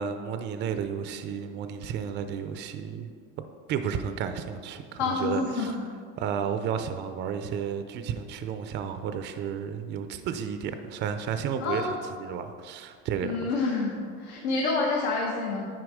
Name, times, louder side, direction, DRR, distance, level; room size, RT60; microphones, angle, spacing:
voice 1, 0.0-3.1 3.7-5.8 6.2-13.4, right 7 dB, 35° right, 9 dB, 0.5 m, -32 dB
voice 2, 5.0-5.7 11.6-11.9 13.2-15.7, left 3 dB, 70° left, -2 dB, 1.2 m, -28 dB
9.6 x 4.6 x 4.9 m, 2.1 s
supercardioid pair, 135°, 31 cm